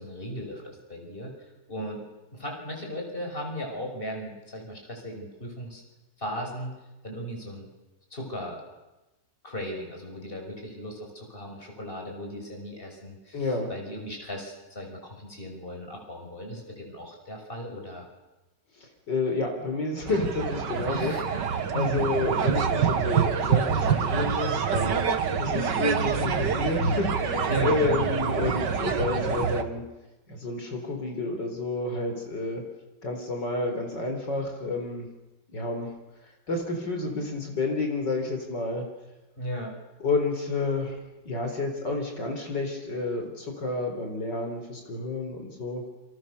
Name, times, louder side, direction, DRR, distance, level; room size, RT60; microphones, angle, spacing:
voice 1, 0.0-1.3 1.7-2.0 2.3-5.8 6.2-6.8 7.0-7.7 8.1-8.6 9.4-18.1 20.9-22.1 27.5-28.0 39.4-39.8, equal, 30° left, 2 dB, 6.3 m, -36 dB
voice 2, 13.3-13.7 18.8-21.1 21.7-25.0 25.4-29.8 30.3-32.6 33.0-35.1 35.5-35.9 36.5-38.8 40.0-41.0 41.2-45.9, left 3 dB, 75° left, 3 dB, 4.9 m, -30 dB
sound 1, 20.1-29.6, right 7 dB, 75° right, 2.2 m, -26 dB
29.0 x 27.5 x 6.9 m, 1.0 s
omnidirectional pair, 1.9 m